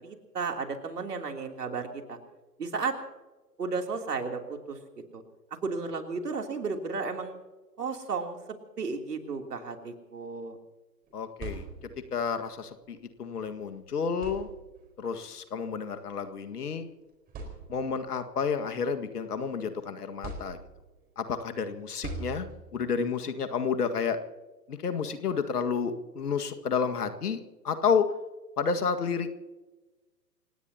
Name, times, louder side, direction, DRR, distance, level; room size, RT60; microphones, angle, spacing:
voice 1, 0.0-2.2 2.6-3.0 3.6-4.8 5.1-5.2 5.6-7.4 7.8-8.4 8.8-10.6 11.8-12.1, right 4 dB, 70° right, 3 dB, 3.3 m, -33 dB
voice 2, 11.1-11.7 12.1-14.5 15.0-16.9 17.7-20.6 21.2-22.5 22.7-24.2 24.7-27.4 27.6-28.1 28.6-29.3, left 6 dB, 65° left, 8 dB, 1.9 m, -30 dB
sound 1, 11.1-12.2 13.5-13.6 14.1-15.0 16.1-16.2 16.8-16.9 17.3-18.1 18.6-19.6 20.2-21.0 22.0-22.9, right 3 dB, 20° right, 4.4 m, -42 dB
28.5 x 17.5 x 2.8 m, 1.1 s
figure-of-eight pair, 120°, 49 cm